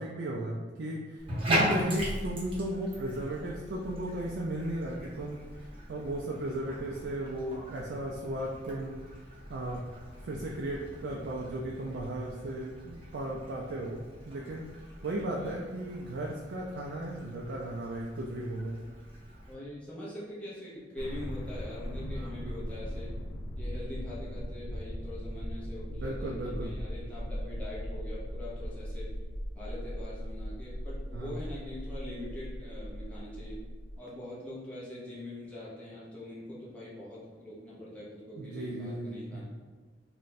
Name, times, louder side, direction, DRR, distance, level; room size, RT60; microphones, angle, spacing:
voice 1, 0.0-9.0 9.5-9.8 10.2-14.7 15.0-18.8 22.0-22.6 25.9-26.7 31.1-31.3 38.4-39.4, right 1 dB, 75° right, -3 dB, 0.3 m, -36 dB
Bathtub (filling or washing), 1.2-19.5, equal, 30° right, 0.7 m, -39 dB
voice 2, 6.4-6.8 15.3-15.6 19.5-23.1 23.6-29.1 29.5-33.6 34.0-39.5, left 1 dB, 5° left, -8 dB, 0.7 m, -43 dB
sound 1, 21.0-34.0, equal, 80° left, 0.5 m, -38 dB
2.5 x 2.2 x 3.9 m, 1.4 s
head